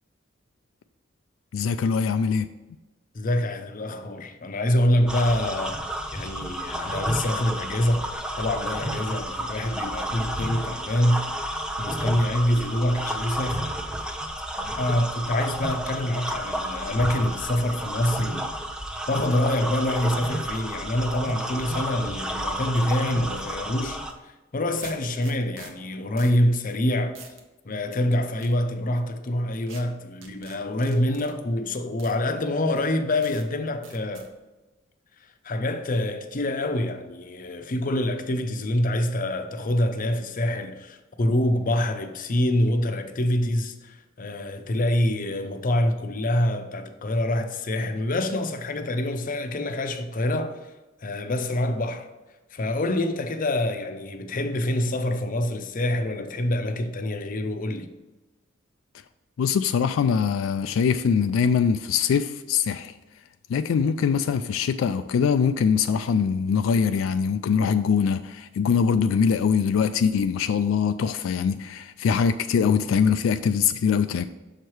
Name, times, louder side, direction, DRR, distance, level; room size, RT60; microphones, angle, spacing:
voice 1, 1.5-2.5 59.4-62.9 63.5-74.2, left 6 dB, 85° left, 0.3 m, -23 dB
voice 2, 3.1-8.1 8.4-11.4 11.8-13.7 14.6-18.5 19.1-27.2 27.6-34.3 35.4-50.6 51.0-52.1 52.5-57.9, left 1 dB, 45° left, 0.6 m, -26 dB
sound 1, 5.1-24.1, right 1 dB, 5° right, 0.5 m, -31 dB
sound 2, 24.0-24.1 24.8-25.7 26.2-26.4 26.7-26.8 27.1-27.4 27.9-28.5 29.7-29.8 30.2-31.3 32.0-32.2 32.8-32.9 33.2-33.5 33.8-34.3, right 4 dB, 80° right, 1.0 m, -45 dB
6.5 x 4.7 x 4.6 m
head